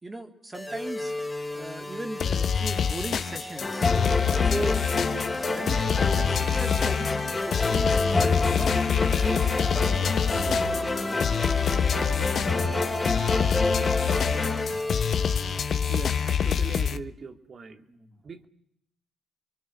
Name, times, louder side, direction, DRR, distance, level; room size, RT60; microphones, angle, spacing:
voice 1, 0.0-1.2 1.5-3.9 4.4-4.8 5.2-7.2 7.5-10.0 17.9-18.2, right 2 dB, 20° right, 4 dB, 3.5 m, -37 dB
sound 1, 0.5-17.0, left 1 dB, 5° left, 3.6 m, -36 dB
sound 2, 2.2-17.0, left 7 dB, 55° left, 1.1 m, -26 dB
sound 3, 3.6-14.7, left 3 dB, 20° left, 4.0 m, -28 dB
voice 2, 15.9-17.8 18.2-18.5, right 5 dB, 45° right, 7 dB, 2.5 m, -40 dB
29.0 x 23.0 x 6.5 m, 0.75 s
cardioid pair, 90°, 0 cm